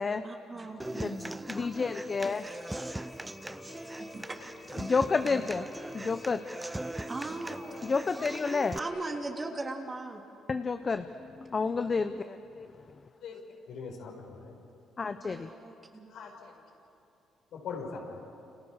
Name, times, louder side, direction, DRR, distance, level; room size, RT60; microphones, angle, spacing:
voice 1, 0.2-1.2 2.3-2.6 3.8-4.3 7.1-7.8 8.7-10.2 15.2-16.1, right 2 dB, 25° right, 2 dB, 3.2 m, -39 dB
Human voice / Acoustic guitar, 0.8-8.8, right 1 dB, 10° right, 0.6 m, -40 dB
voice 2, 0.9-2.5 3.5-3.9 4.8-5.7 5.9-6.4 7.8-8.8 10.5-13.0 15.0-15.5, left 4 dB, 30° left, 9 dB, 0.9 m, -31 dB
sound 1, 2.3-9.2, left 2 dB, 50° left, 4.3 m, -50 dB
voice 3, 13.2-14.6 16.1-16.6 17.5-18.2, left 5 dB, 75° left, 1 dB, 5.9 m, -42 dB
29.5 x 29.0 x 6.5 m, 2.7 s
cardioid pair, 105°, 0 cm